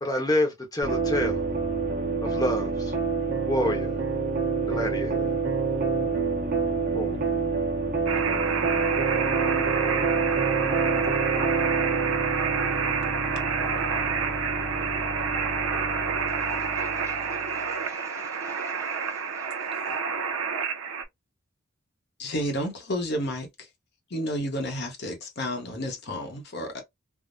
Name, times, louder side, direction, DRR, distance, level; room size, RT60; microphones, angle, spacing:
voice 1, 0.0-1.4 2.2-2.9 3.5-4.0 4.7-5.3 6.9-7.2, left 1 dB, 20° left, 0.8 m, -27 dB
sound 1, 0.8-17.6, right 4 dB, 45° right, 1.0 m, -28 dB
sound 2, 8.1-21.0, right 6 dB, 75° right, 0.5 m, -28 dB
voice 2, 16.2-19.8, right 2 dB, 15° right, 0.3 m, -47 dB
voice 3, 22.2-23.7 24.1-26.8, equal, 50° left, 0.9 m, -31 dB
3.5 x 2.0 x 2.5 m
head